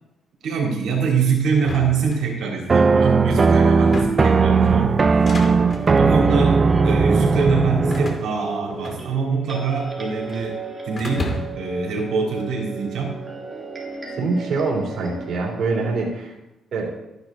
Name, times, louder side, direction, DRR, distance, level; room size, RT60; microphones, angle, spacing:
voice 1, 0.4-5.2 5.9-10.6 10.8-13.2, right 5 dB, 75° right, -2 dB, 3.1 m, -24 dB
sound 1, 1.6-2.7 3.7-4.4 5.1-5.9 6.7-7.1 7.9-9.4 9.7-10.5 11.0-11.7, left 1 dB, 40° left, 2.5 m, -32 dB
sound 2, 2.7-8.3, right 4 dB, 35° right, 0.6 m, -17 dB
sound 3, 5.7-16.0, right 4 dB, 15° right, 3.6 m, -34 dB
voice 2, 14.2-16.3 16.7-16.9, right 3 dB, 60° right, -2 dB, 3.0 m, -24 dB
13.0 x 10.5 x 3.8 m, 0.93 s
cardioid pair, 90°, 0 cm